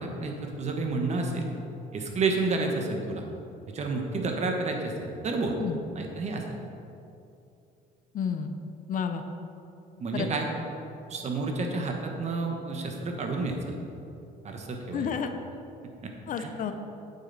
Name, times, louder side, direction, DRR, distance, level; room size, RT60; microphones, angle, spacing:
voice 1, 0.0-1.5 1.9-3.2 3.7-5.5 5.9-6.4 10.0-10.4 11.1-13.7 14.4-15.1 16.0-16.1 16.4-16.5, right 3 dB, 40° right, 2 dB, 1.3 m, -30 dB
voice 2, 8.1-8.6 8.9-9.2 10.1-10.3 14.9-15.3 16.3-16.7, left 7 dB, 50° left, 7 dB, 0.7 m, -30 dB
9.0 x 7.9 x 4.1 m, 2.7 s
cardioid pair, 110°, 17 cm